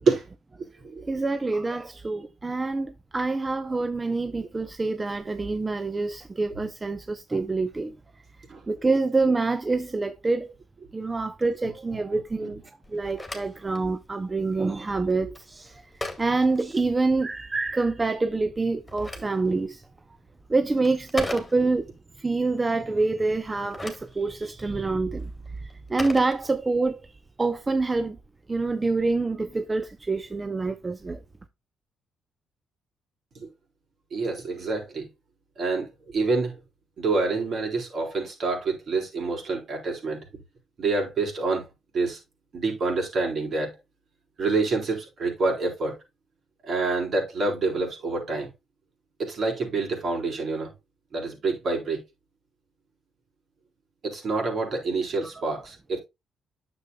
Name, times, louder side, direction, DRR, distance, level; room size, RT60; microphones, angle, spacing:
voice 1, 1.0-8.0 8.7-10.5 10.9-12.6 12.9-15.8 16.2-19.8 20.5-21.9 22.2-25.3 25.6-27.0 27.4-28.2 28.5-31.2, right 3 dB, 25° right, 0.6 m, -26 dB
Telephone, 12.8-17.4 18.6-22.0 23.4-27.0, left 2 dB, 15° left, 2.0 m, -40 dB
voice 2, 34.1-35.1 35.6-36.6 37.0-40.2 40.8-41.6 41.9-42.2 42.5-43.8 44.4-45.9 46.6-48.5 49.2-50.7 51.1-52.0 54.0-56.0, right 3 dB, 55° right, 4.1 m, -27 dB
9.4 x 7.0 x 2.2 m
cardioid pair, 90°, 0 cm